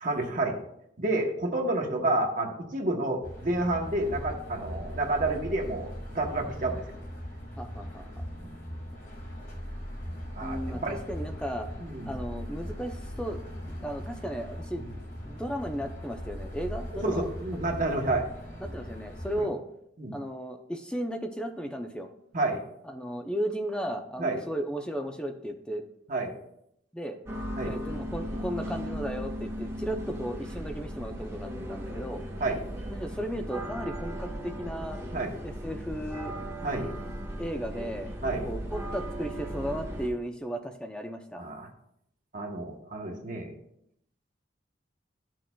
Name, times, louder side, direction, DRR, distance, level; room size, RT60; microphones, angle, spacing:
voice 1, 0.0-0.6 1.0-6.8 8.4-8.5 10.4-11.0 11.8-12.1 17.0-18.3 20.0-20.1 22.3-22.6 24.2-24.4 26.1-26.3 27.6-27.7 32.4-32.6 35.1-35.3 36.6-36.9 38.2-38.5 41.4-41.7 42.3-43.5, right 2 dB, 45° right, 1 dB, 1.0 m, -29 dB
sound 1, 3.2-19.4, equal, 45° left, 2.0 m, -39 dB
voice 2, 7.6-8.0 10.4-11.7 12.1-14.8 15.2-17.3 18.6-19.6 20.1-22.1 22.8-25.8 26.9-27.2 27.6-32.2 32.9-35.0 35.4-36.3 37.4-38.1 38.4-41.4, equal, 5° left, 5 dB, 0.5 m, -35 dB
sound 2, 27.3-40.1, equal, 15° right, 1.4 m, -37 dB
12.5 x 6.2 x 2.3 m, 0.76 s
head